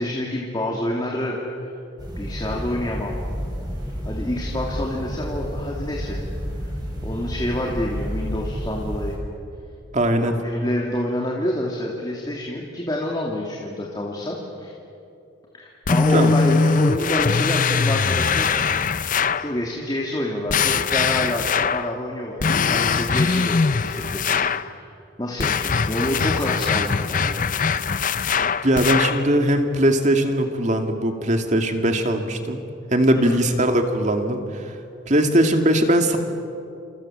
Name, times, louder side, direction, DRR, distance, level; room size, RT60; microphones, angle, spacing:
voice 1, 0.0-1.4 2.2-3.2 4.0-6.2 6.6-6.7 7.0-9.2 10.2-14.7 15.5-18.5 19.0-19.1 19.4-24.4 24.7-24.9 25.2-27.5 33.1-33.4, left 1 dB, 20° left, -2 dB, 2.7 m, -27 dB
sound 1, 2.0-9.2, equal, 20° right, 6.0 m, -30 dB
voice 2, 9.9-10.3 16.1-16.3 28.6-32.6 32.9-34.7 35.1-36.2, right 1 dB, 40° right, 5 dB, 2.4 m, -20 dB
sound 2, 15.9-19.5 20.5-21.9 22.4-24.7 25.4-29.3, left 5 dB, 45° left, 0.7 m, -21 dB
28.5 x 27.5 x 7.5 m, 2.7 s
head